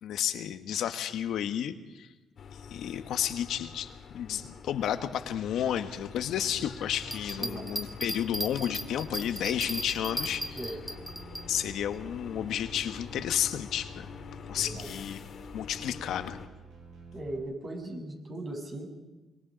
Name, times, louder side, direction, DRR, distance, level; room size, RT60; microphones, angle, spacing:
voice 1, 0.0-2.1 2.7-10.6 11.4-14.1 14.5-15.2 15.5-16.4, left 10 dB, 80° left, 9 dB, 1.2 m, -32 dB
sound 1, 2.4-16.5, left 6 dB, 60° left, 1.9 m, -46 dB
sound 2, 6.5-17.4, right 3 dB, 80° right, 7.0 m, -51 dB
Bell, 7.0-11.4 11.9-12.0, equal, 5° right, 2.3 m, -36 dB
voice 2, 14.5-14.9 17.1-18.9, right 1 dB, 40° right, 2 dB, 6.9 m, -38 dB
25.0 x 23.5 x 5.2 m, 1.1 s
cardioid pair, 90°, 0 cm